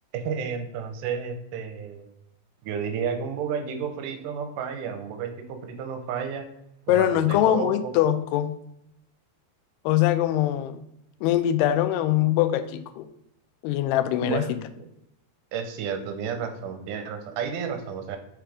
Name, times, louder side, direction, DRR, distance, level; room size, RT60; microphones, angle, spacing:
voice 1, 0.1-2.1 2.6-6.5 6.9-7.9 14.2-14.9 15.5-18.2, right 6 dB, 80° right, 6 dB, 1.9 m, -32 dB
voice 2, 6.9-8.5 9.9-10.8 11.2-13.1 13.6-14.6, left 12 dB, 90° left, 10 dB, 2.6 m, -23 dB
7.3 x 3.4 x 4.9 m, 0.80 s
omnidirectional pair, 4.6 m